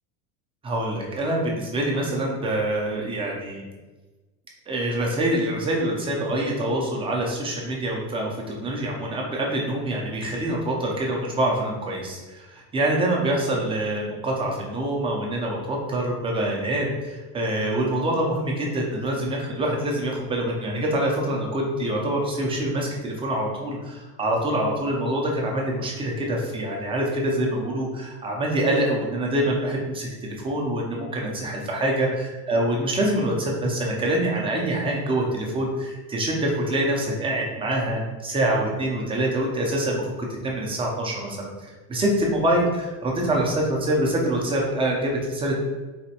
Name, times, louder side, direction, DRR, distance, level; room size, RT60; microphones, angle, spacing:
voice 1, 0.6-3.6 4.7-30.1 30.4-40.0 40.4-45.6, right 1 dB, 15° right, -1 dB, 0.4 m, -25 dB
4.0 x 2.1 x 2.7 m, 1.2 s
supercardioid pair, 135°, 41 cm